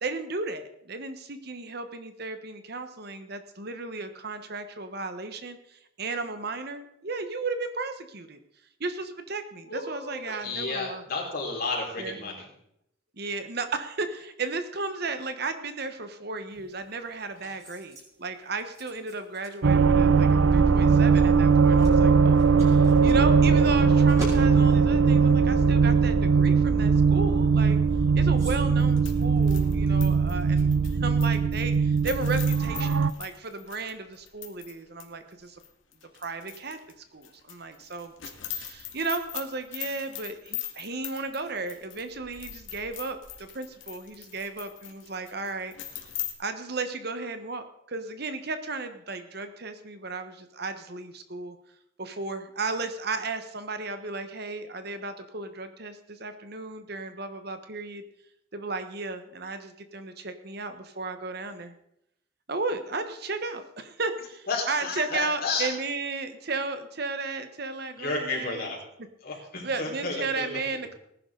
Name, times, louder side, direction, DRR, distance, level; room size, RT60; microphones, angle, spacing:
voice 1, 0.0-8.4 8.8-11.0 12.0-12.2 13.2-27.8 28.1-30.7 31.0-35.6 36.2-36.8 37.1-38.1 38.5-45.7 46.4-51.6 52.0-58.0 58.5-61.7 62.5-68.7 69.6-70.9, right 3 dB, 55° right, 9 dB, 1.2 m, -34 dB
voice 2, 9.7-12.5 64.5-65.7 67.9-68.8 69.2-70.6, left 3 dB, 50° left, -2 dB, 4.7 m, -32 dB
sound 1, 16.5-30.3, right 1 dB, 15° right, 6.2 m, -48 dB
sound 2, 19.6-33.1, right 5 dB, 75° right, 0.5 m, -20 dB
sound 3, 28.8-34.7 35.0-35.1 35.6-36.9 37.2-46.3, left 11 dB, 75° left, 2.1 m, -40 dB
19.0 x 11.0 x 4.0 m, 0.76 s
head